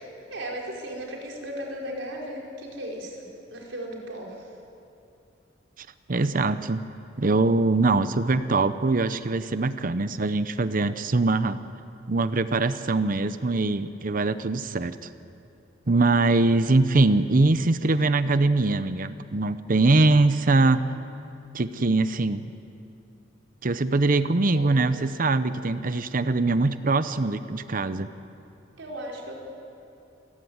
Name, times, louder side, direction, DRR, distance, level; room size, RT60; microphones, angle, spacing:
voice 1, 0.0-4.5 24.5-25.1 28.8-29.4, equal, 75° right, -2 dB, 5.0 m, -36 dB
voice 2, 5.8-6.8 7.2-11.6 12.1-15.1 15.9-20.8 21.5-22.5 23.6-28.1, right 3 dB, 45° right, 12 dB, 0.8 m, -22 dB
28.5 x 15.5 x 9.5 m, 2.7 s
head